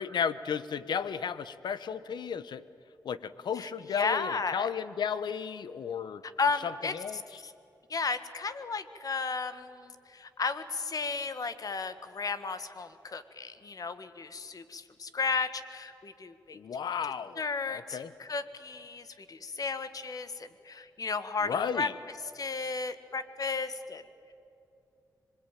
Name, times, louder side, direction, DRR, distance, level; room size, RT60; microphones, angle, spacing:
voice 1, 0.0-2.6 3.0-6.2 6.6-7.2 16.5-17.4 17.7-18.1 21.4-21.9, left 7 dB, 80° left, 15 dB, 1.0 m, -33 dB
voice 2, 3.5-4.7 6.2-7.5 7.9-16.6 17.0-21.9 22.2-24.0, left 4 dB, 55° left, 11 dB, 1.7 m, -34 dB
26.0 x 21.5 x 9.1 m, 2.8 s
cardioid pair, 70°, 7 cm